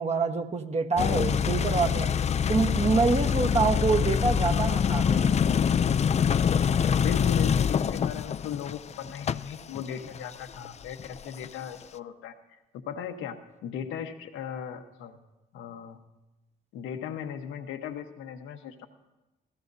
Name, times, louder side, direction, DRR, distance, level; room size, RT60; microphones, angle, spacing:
voice 1, 0.0-2.2 2.5-5.3, right 4 dB, 35° right, 4 dB, 1.2 m, -26 dB
sound 1, 1.0-11.5, left 7 dB, 35° left, 0.4 m, -25 dB
voice 2, 7.0-12.3 12.7-15.2 15.5-16.0 16.7-18.9, left 8 dB, 90° left, 5 dB, 1.1 m, -37 dB
24.5 x 16.0 x 2.7 m, 1.0 s
cardioid pair, 90°, 20 cm